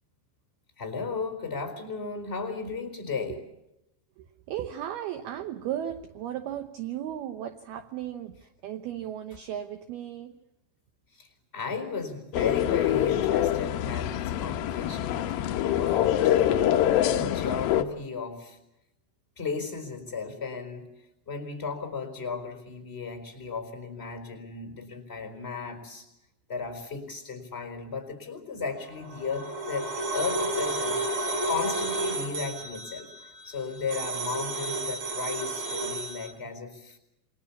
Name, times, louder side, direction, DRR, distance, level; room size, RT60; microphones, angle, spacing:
voice 1, 0.8-3.4 11.1-16.8 17.2-18.6 19.4-20.9 21.3-26.1 26.5-37.0, left 5 dB, 15° left, 7 dB, 3.7 m, -35 dB
voice 2, 4.2-10.4 35.8-36.0, right 11 dB, 80° right, 8 dB, 2.3 m, -36 dB
sound 1, 12.3-17.8, left 12 dB, 85° left, 2.1 m, -25 dB
sound 2, 28.9-36.3, right 2 dB, 25° right, 5.3 m, -32 dB
28.0 x 22.0 x 7.1 m, 0.88 s
omnidirectional pair, 5.8 m